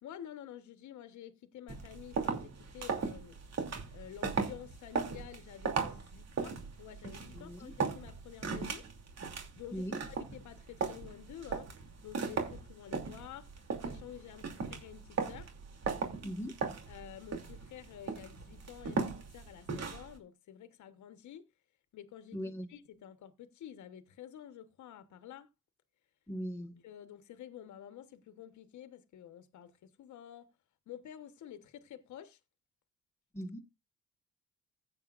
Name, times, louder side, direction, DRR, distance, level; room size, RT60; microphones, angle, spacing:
voice 1, 0.0-3.4 3.9-8.8 9.6-11.7 12.0-13.5 13.8-15.5 16.9-21.4 21.9-22.4 22.7-25.5 26.8-30.5 30.9-32.4, left 10 dB, 70° left, 1.2 m, -50 dB
sound 1, 1.7-20.2, right 5 dB, 60° right, 2.8 m, -38 dB
voice 2, 7.3-7.7 9.7-10.0 16.2-16.6 22.3-22.7 26.3-26.8 33.3-33.6, equal, 10° left, 1.6 m, -39 dB
15.5 x 8.6 x 2.5 m
cardioid pair, 90°, 30 cm